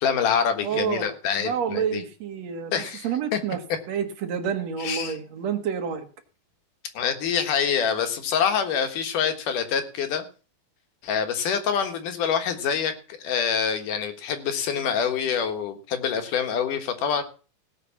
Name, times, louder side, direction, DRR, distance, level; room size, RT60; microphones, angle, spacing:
voice 1, 0.0-2.0 2.7-3.4 4.8-5.2 6.9-10.3 11.0-17.2, left 7 dB, 65° left, 7 dB, 3.0 m, -26 dB
voice 2, 0.6-1.1 1.4-3.6 3.9-6.0, right 7 dB, 55° right, 6 dB, 2.4 m, -29 dB
17.0 x 5.8 x 7.1 m, 0.36 s
omnidirectional pair, 4.1 m